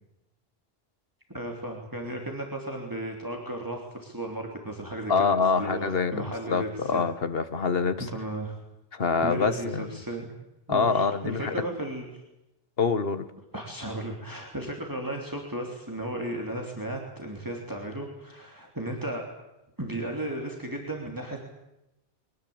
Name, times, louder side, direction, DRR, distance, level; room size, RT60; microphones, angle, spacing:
voice 1, 1.3-5.3 5.6-7.0 8.0-8.6 9.2-10.3 10.7-12.1 13.5-19.2 19.8-21.4, right 1 dB, 20° right, 1 dB, 3.2 m, -35 dB
voice 2, 5.1-8.0 8.9-9.9 10.7-11.5 12.8-13.3, left 5 dB, 65° left, 11 dB, 1.7 m, -25 dB
23.5 x 18.5 x 8.8 m, 0.91 s
omnidirectional pair, 1.0 m